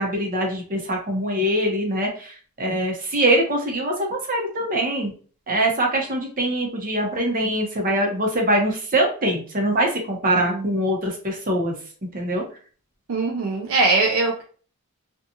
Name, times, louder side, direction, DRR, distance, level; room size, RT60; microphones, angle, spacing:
voice 1, 0.0-5.1 5.5-11.7 12.1-12.4, right 1 dB, 40° right, 0 dB, 0.8 m, -23 dB
voice 2, 13.1-14.4, right 3 dB, 65° right, 1 dB, 0.4 m, -21 dB
2.6 x 2.3 x 2.7 m, 0.40 s
head